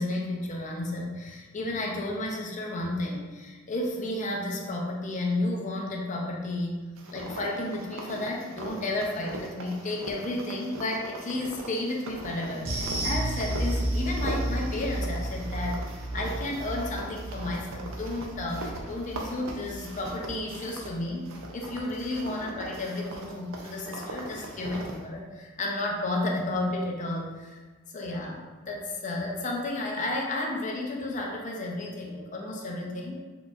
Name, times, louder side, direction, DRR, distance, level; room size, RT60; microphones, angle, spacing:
voice 1, 0.0-6.8 7.1-15.8 16.1-27.6 27.9-33.2, left 2 dB, 40° left, -1 dB, 0.6 m, -32 dB
sound 1, 7.0-21.0 21.2-25.0, right 1 dB, 90° right, 0.5 m, -40 dB
sound 2, 12.6-21.3 21.6-21.8 22.2-22.3, right 1 dB, 50° right, 0.8 m, -33 dB
4.2 x 2.9 x 2.4 m, 1.3 s
head